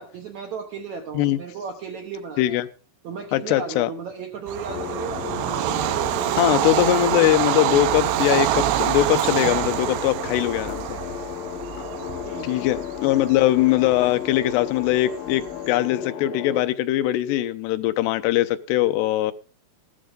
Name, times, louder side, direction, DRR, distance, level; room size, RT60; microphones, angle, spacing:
voice 1, 0.0-2.6 3.0-5.3 12.2-12.7, right 5 dB, 65° right, 1.8 m, -35 dB
voice 2, 3.3-3.9 6.3-11.0 12.4-19.3, left 14 dB, 85° left, 2.9 m, -21 dB
Bird vocalization bird call bird song / Train, 4.5-15.7, right 14 dB, 85° right, 2.8 m, -26 dB
sound 1, 4.7-16.6, left 10 dB, 65° left, 2.9 m, -34 dB
14.5 x 13.0 x 3.8 m
omnidirectional pair, 4.7 m